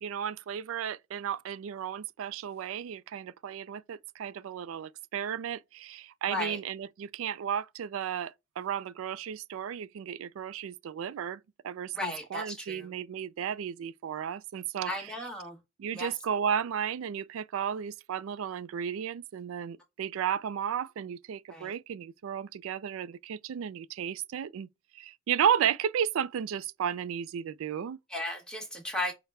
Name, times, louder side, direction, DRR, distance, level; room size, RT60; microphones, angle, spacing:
voice 1, 0.0-15.1 15.8-24.7 24.9-28.0, right 8 dB, 75° right, 0.3 m, -33 dB
voice 2, 6.3-6.6 11.9-12.9 14.9-15.6 15.9-16.1 21.5-21.7 28.1-29.1, left 1 dB, 5° left, 0.9 m, -35 dB
5.6 x 2.1 x 3.3 m
head